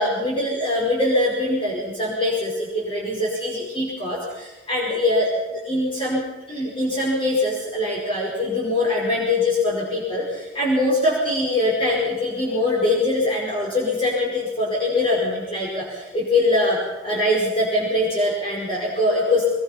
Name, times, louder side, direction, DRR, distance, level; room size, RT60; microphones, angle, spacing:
voice 1, 0.0-19.4, left 1 dB, 30° left, -4 dB, 4.9 m, -23 dB
23.0 x 21.5 x 5.7 m, 1.2 s
head